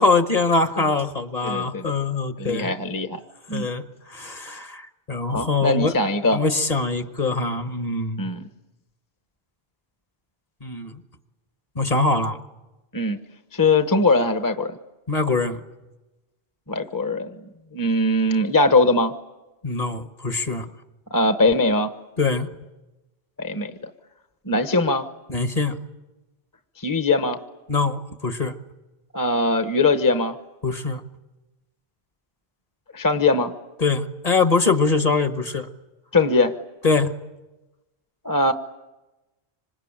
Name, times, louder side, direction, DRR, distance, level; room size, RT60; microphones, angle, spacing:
voice 1, 0.0-2.7 3.5-5.9 6.3-8.3 10.6-11.0 11.7-12.4 15.1-15.6 19.6-20.7 22.2-22.5 25.3-25.8 27.7-28.5 30.6-31.0 33.8-35.7 36.8-37.1, left 3 dB, 35° left, 9 dB, 1.4 m, -23 dB
voice 2, 1.4-1.9 2.4-3.2 3.5-3.7 5.3-6.4 8.2-8.4 12.9-13.2 13.5-14.7 16.7-17.3 17.7-19.1 21.1-21.9 23.4-23.9 24.5-25.1 26.8-27.4 29.1-30.4 32.9-33.5 36.1-36.5 38.2-38.5, left 2 dB, 20° left, 9 dB, 1.0 m, -21 dB
26.0 x 26.0 x 8.9 m, 1.1 s
omnidirectional pair, 1.1 m